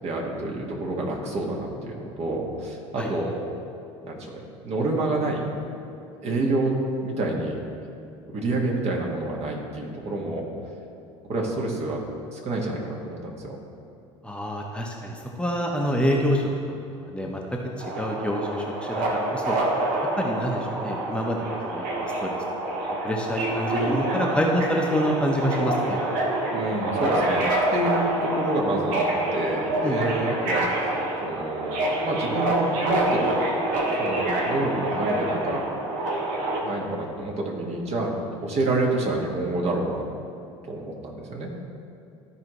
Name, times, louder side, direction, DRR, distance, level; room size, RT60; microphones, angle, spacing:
voice 1, 0.0-3.5 4.0-5.5 6.2-6.7 7.0-7.6 8.3-10.5 11.3-12.0 12.3-13.6 26.5-29.1 29.3-31.0 31.2-33.3 34.0-35.6 36.6-40.0 40.7-41.5, right 2 dB, 45° right, -1 dB, 1.6 m, -28 dB
voice 2, 14.2-16.4 17.0-17.6 18.0-19.0 19.3-19.6 20.2-21.8 22.2-22.4 23.0-26.0 29.8-30.1, equal, 5° left, -1 dB, 1.0 m, -26 dB
Subway metro underground, 17.8-36.6, right 1 dB, 60° right, 1.4 m, -27 dB
13.0 x 4.8 x 3.1 m, 2.7 s
hypercardioid pair, 65°, 16 cm